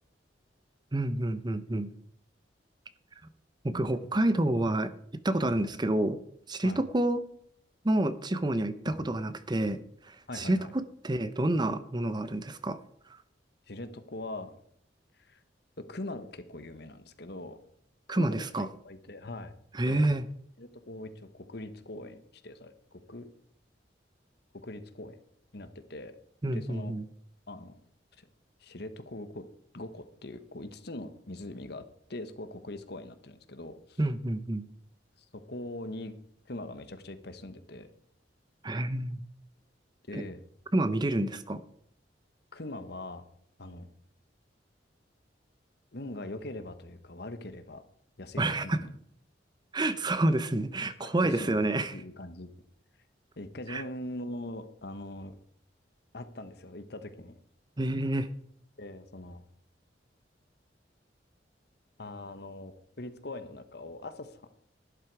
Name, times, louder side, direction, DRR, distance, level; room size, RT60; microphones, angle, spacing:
voice 1, 0.9-1.9 3.6-4.9 5.2-6.2 6.5-7.2 7.8-9.8 10.0-12.8 18.1-18.7 19.7-20.2 26.4-27.0 34.0-34.7 38.6-39.2 40.1-40.2 40.7-41.6 48.4-48.8 49.7-52.0 53.7-53.8 57.8-58.3, right 1 dB, 25° right, 13 dB, 0.7 m, -28 dB
voice 2, 10.3-10.7 13.7-14.6 15.2-15.4 15.9-17.6 18.1-19.5 19.8-20.1 20.6-23.3 24.5-25.2 25.5-26.1 26.5-27.0 27.5-27.8 28.2-28.3 28.6-29.4 29.7-31.8 32.1-34.0 35.5-36.1 36.5-37.9 40.1-40.4 42.5-43.2 43.6-43.9 45.9-47.8 48.2-48.9 51.0-51.6 51.9-52.5 53.4-55.4 56.1-57.4 58.8-59.4 62.0-64.4, left 1 dB, 60° left, 10 dB, 1.3 m, -42 dB
12.0 x 11.0 x 4.8 m, 0.68 s
head